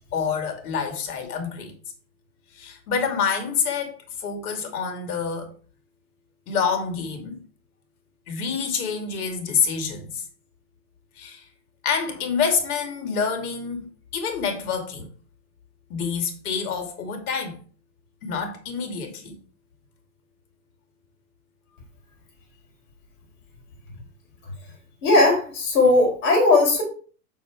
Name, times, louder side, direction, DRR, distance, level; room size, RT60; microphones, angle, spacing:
voice 1, 0.1-1.7 2.5-5.5 6.5-7.4 8.3-10.2 11.2-11.4 11.8-15.1 15.9-17.6 18.2-19.4, left 6 dB, 65° left, 2.5 m, -27 dB
voice 2, 25.0-26.8, left 2 dB, 40° left, 4.6 m, -18 dB
6.3 x 6.1 x 4.7 m
hypercardioid pair, 150°, 48 cm